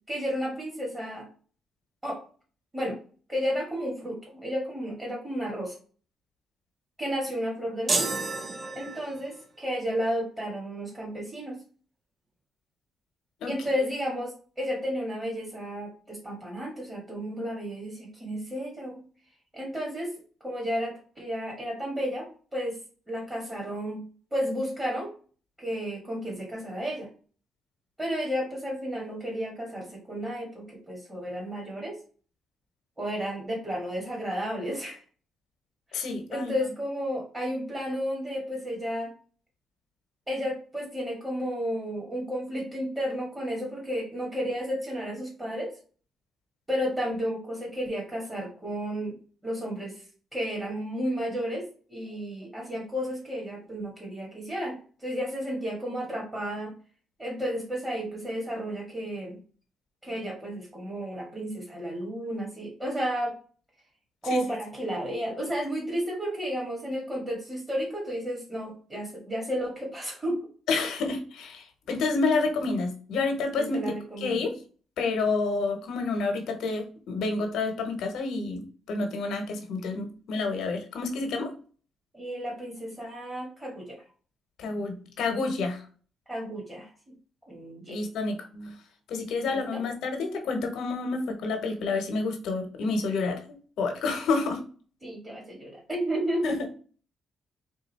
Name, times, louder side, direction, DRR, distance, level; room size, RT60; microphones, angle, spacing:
voice 1, 0.1-1.3 2.0-2.2 2.7-3.0 3.3-5.7 7.0-8.2 8.8-11.6 13.5-19.0 19.5-20.1 20.4-22.8 23.1-24.0 24.3-25.1 25.6-27.1 28.0-32.0 33.0-35.0 36.3-39.1 40.3-45.7 46.7-49.2 49.4-50.0 50.3-56.7 57.2-59.4 60.0-63.3 64.2-70.4 73.5-74.5 82.1-84.0 86.3-86.9 87.5-88.0 89.5-89.8 95.0-96.6, equal, 15° right, -3 dB, 1.8 m, -32 dB
sound 1, 7.9-9.4, right 3 dB, 35° right, 0.7 m, -30 dB
voice 2, 35.9-36.5 64.3-64.4 70.7-73.8 74.2-74.5 75.0-78.6 78.9-81.5 84.6-85.8 87.9-88.7 89.1-93.4 93.8-94.6 96.4-96.7, left 3 dB, 75° left, 5 dB, 1.0 m, -29 dB
3.7 x 2.6 x 4.1 m, 0.41 s
cardioid pair, 90°, 0 cm